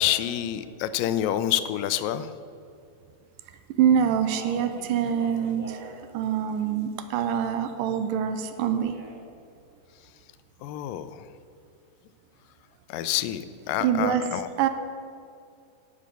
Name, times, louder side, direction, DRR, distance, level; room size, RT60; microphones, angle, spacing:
voice 1, 0.0-2.3 10.6-11.1 12.9-14.5, left 12 dB, 90° left, 13 dB, 2.3 m, -27 dB
voice 2, 3.8-5.8 6.1-9.0 13.8-14.7, right 8 dB, 90° right, 9 dB, 2.3 m, -25 dB
Speech, 4.0-5.9 6.2-7.1 8.5-9.2, right 2 dB, 40° right, 1.0 m, -45 dB
10.0 x 7.5 x 6.7 m, 2.4 s
omnidirectional pair, 3.9 m